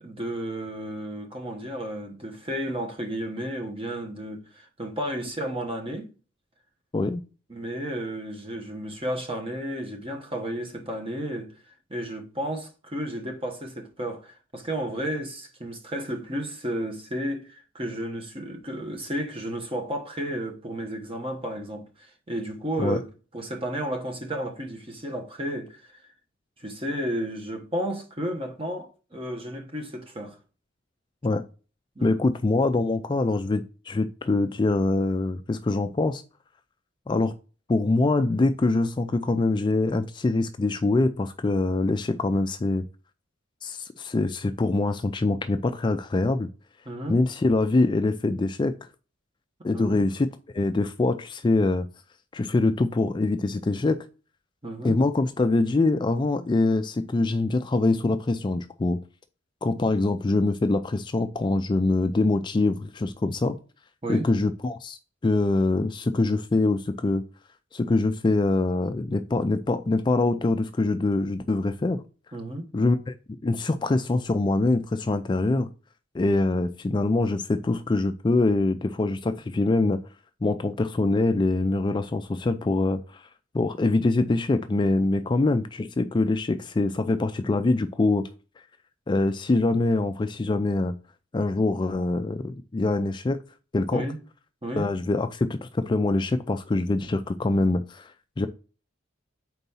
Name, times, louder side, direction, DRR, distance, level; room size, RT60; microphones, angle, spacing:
voice 1, 0.0-6.1 7.5-11.5 11.9-23.1 23.3-26.0 26.6-30.4 32.0-32.2 46.9-47.2 49.7-50.1 54.6-55.0 64.0-64.3 72.3-72.7 93.9-94.2 94.6-94.9, right 1 dB, 30° right, 1.1 m, -32 dB
voice 2, 32.0-36.2 37.1-37.3 37.7-42.9 43.6-46.5 47.1-48.9 49.6-50.3 50.5-51.9 52.3-54.0 54.8-59.0 59.6-63.6 64.1-67.2 67.7-72.0 72.7-73.1 73.4-75.7 76.1-80.0 80.4-83.3 83.5-88.3 89.1-90.9 91.3-93.4 93.7-94.1 94.8-98.5, left 2 dB, 25° left, 0.3 m, -24 dB
4.6 x 4.0 x 5.4 m
head